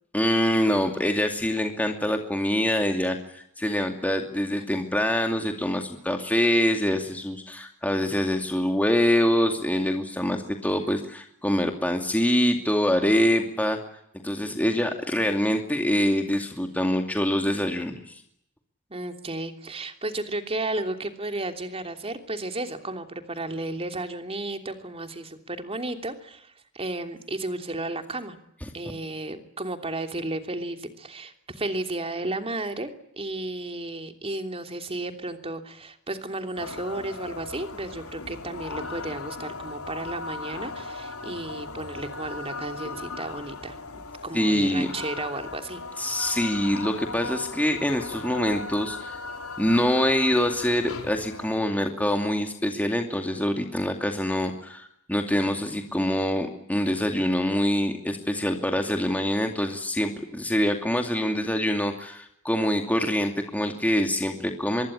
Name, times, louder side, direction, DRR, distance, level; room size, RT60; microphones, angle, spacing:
voice 1, 0.1-13.8 14.2-18.2 44.3-44.9 46.0-49.2 49.6-64.9, equal, 5° left, 4 dB, 2.5 m, -25 dB
voice 2, 18.9-28.4 28.7-43.8 44.2-45.8 47.8-47.9, right 2 dB, 25° right, 7 dB, 3.1 m, -33 dB
sound 1, 36.6-51.6, left 3 dB, 75° left, 4.2 m, -38 dB
25.0 x 22.0 x 10.0 m, 0.74 s
head